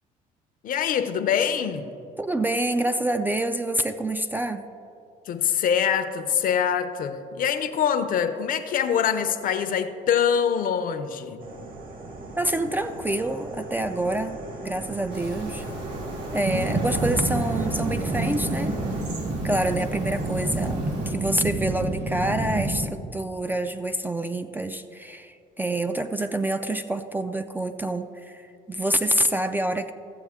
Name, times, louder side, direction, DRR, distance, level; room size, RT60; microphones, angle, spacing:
voice 1, 0.6-1.9 5.3-11.4, left 8 dB, 55° left, 10 dB, 0.6 m, -24 dB
voice 2, 2.2-4.7 12.4-15.7 16.3-18.8 19.4-29.9, right 1 dB, 10° right, 8 dB, 0.3 m, -27 dB
sound 1, 11.4-19.1, right 2 dB, 55° right, 1.4 m, -37 dB
sound 2, 15.1-21.1, right 2 dB, 80° right, 1.7 m, -38 dB
sound 3, 16.4-22.9, right 2 dB, 40° right, 0.9 m, -28 dB
14.0 x 7.2 x 3.6 m, 2.7 s
cardioid pair, 110°, 17 cm